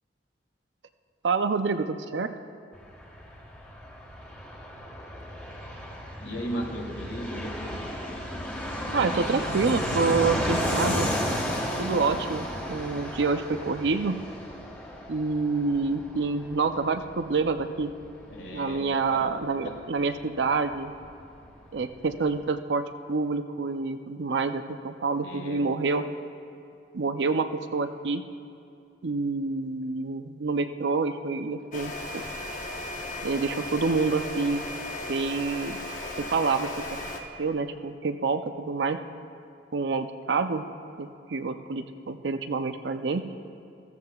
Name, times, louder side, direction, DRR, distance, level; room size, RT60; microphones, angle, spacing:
voice 1, 1.2-2.3 8.9-11.1 11.8-14.2 15.1-17.9 18.5-20.9 21.7-26.0 26.9-28.2 29.0-32.2 33.2-34.6 35.1-35.8 36.2-36.7 37.4-39.0 39.7-40.6 41.0-43.3, right 4 dB, 75° right, 9 dB, 0.6 m, -27 dB
Fixed-wing aircraft airplane, 2.7-21.1 21.4-21.5 21.7-22.4, equal, 10° left, 1.5 m, -33 dB
voice 2, 6.2-7.8 10.6-11.0 18.3-18.8 19.1-19.2 25.2-25.6, equal, 75° left, 0 dB, 1.9 m, -36 dB
sound 1, 31.7-37.2, left 1 dB, 45° left, 1.0 m, -36 dB
15.5 x 14.0 x 2.4 m, 2.6 s
head